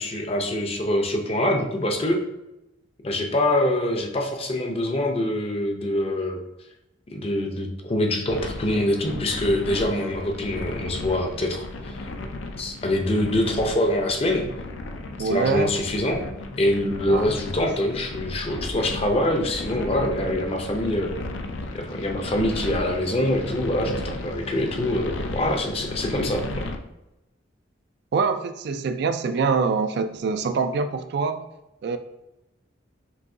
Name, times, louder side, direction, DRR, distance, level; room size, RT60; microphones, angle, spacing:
voice 1, 0.0-2.2 3.0-6.4 7.1-12.1 12.6-14.4 15.3-16.2 16.6-21.2 21.7-26.7, left 1 dB, 30° left, 3 dB, 0.6 m, -24 dB
sound 1, 8.3-26.8, left 2 dB, 75° left, 0.5 m, -35 dB
voice 2, 15.2-15.7 17.0-17.3 28.1-31.4 31.8-32.0, right 5 dB, 55° right, 9 dB, 0.3 m, -24 dB
6.1 x 2.7 x 2.6 m, 0.93 s
head